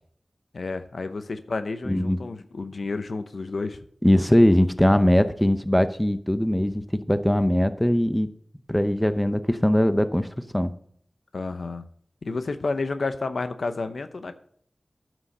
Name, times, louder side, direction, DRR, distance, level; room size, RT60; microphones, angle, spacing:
voice 1, 0.5-3.8 11.3-11.8 12.2-14.4, left 3 dB, 80° left, 10 dB, 0.7 m, -30 dB
voice 2, 1.8-2.2 4.0-8.3 8.7-10.3 10.5-10.7, left 1 dB, 10° left, 11 dB, 0.7 m, -21 dB
9.5 x 6.2 x 6.6 m, 0.64 s
wide cardioid pair, 55°, 0 cm